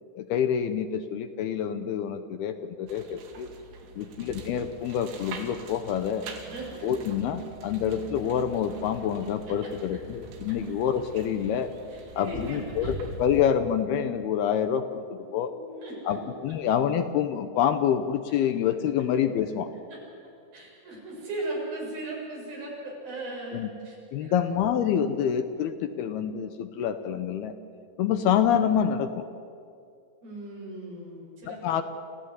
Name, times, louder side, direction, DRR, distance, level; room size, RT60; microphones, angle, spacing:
voice 1, 0.2-3.5 4.0-6.3 6.8-11.7 12.2-15.5 16.1-19.7 23.5-23.7 24.1-27.5 28.0-29.3 31.5-31.8, left 8 dB, 75° left, 9 dB, 2.5 m, -27 dB
sound 1, 2.9-13.4, right 3 dB, 85° right, 4.8 m, -43 dB
voice 2, 3.9-4.3 6.4-6.8 9.5-9.7 11.9-12.9 13.2-13.3 15.2-16.2 19.9-20.0 20.5-24.5 30.2-31.6, right 2 dB, 55° right, -3 dB, 8.5 m, -38 dB
28.5 x 15.5 x 9.6 m, 2.4 s
omnidirectional pair, 5.2 m